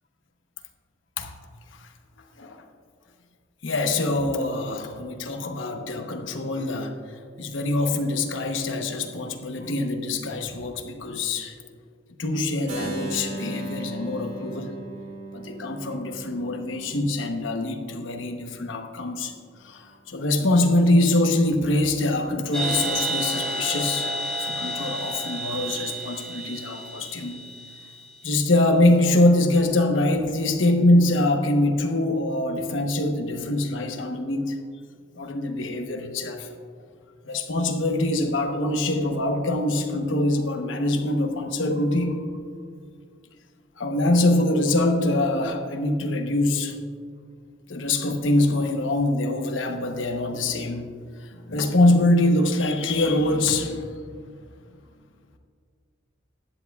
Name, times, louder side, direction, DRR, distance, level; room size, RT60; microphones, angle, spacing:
voice 1, 3.6-6.9 7.4-11.5 12.2-14.7 15.3-19.3 19.6-24.1 24.4-27.4 28.2-34.6 35.2-36.5 37.2-42.4 43.8-46.8 47.7-50.9 51.3-53.9, left 1 dB, 85° left, 4 dB, 1.0 m, -24 dB
Keyboard (musical), 12.7-18.5, right 2 dB, 75° right, 2.2 m, -37 dB
sound 1, 22.5-28.1, right 1 dB, 5° left, 2.4 m, -30 dB
15.5 x 11.0 x 2.3 m, 2.1 s
head